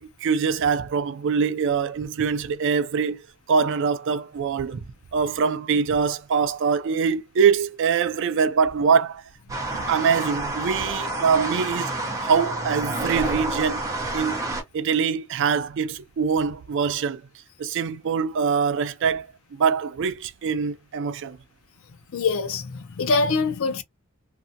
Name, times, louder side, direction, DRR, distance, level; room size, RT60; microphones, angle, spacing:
voice 1, 0.0-3.2 3.5-4.8 5.1-9.2 9.9-11.9 12.2-13.9 14.1-14.4 14.7-17.2 17.6-21.4, right 6 dB, 55° right, 0.4 m, -23 dB
sound 1, 9.5-14.6, right 2 dB, 15° right, 0.8 m, -29 dB
voice 2, 22.1-23.8, left 4 dB, 65° left, 0.5 m, -24 dB
2.7 x 2.2 x 2.5 m
head